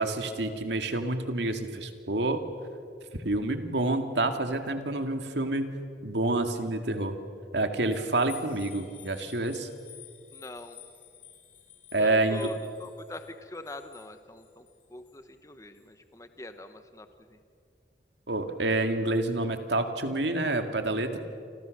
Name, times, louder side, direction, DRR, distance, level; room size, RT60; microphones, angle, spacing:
voice 1, 0.0-2.4 3.2-5.7 6.0-7.2 7.5-9.7 11.9-12.5 18.3-21.2, right 2 dB, 80° right, 6 dB, 2.2 m, -28 dB
sound 1, 7.9-15.2 15.7-15.9, left 12 dB, 45° left, 3.9 m, -52 dB
voice 2, 10.3-10.8 12.0-17.4, left 1 dB, 15° left, 9 dB, 1.0 m, -44 dB
28.5 x 26.5 x 6.6 m, 2.4 s
head